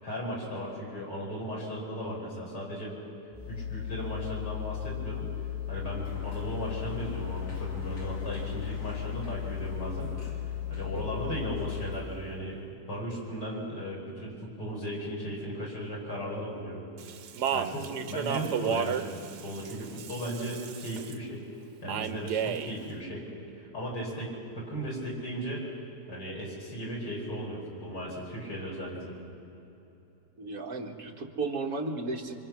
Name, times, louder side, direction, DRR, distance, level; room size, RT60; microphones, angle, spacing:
voice 1, 0.0-3.0 3.4-5.3 5.7-10.1 10.7-12.6 12.9-16.8 17.5-19.1 19.4-21.5 21.8-23.3 23.5-25.6 26.1-29.1, equal, 90° left, -4 dB, 6.0 m, -36 dB
sound 1, 3.3-12.0, left 11 dB, 10° left, 3.9 m, -36 dB
Sliding door, 5.6-12.8, left 1 dB, 70° left, 2.9 m, -47 dB
Speech, 17.0-21.1 21.9-22.7, right 8 dB, 85° right, 1.4 m, -32 dB
voice 2, 30.4-32.4, right 3 dB, 55° right, 2 dB, 2.0 m, -34 dB
25.5 x 25.0 x 6.1 m, 3.0 s
omnidirectional pair, 1.8 m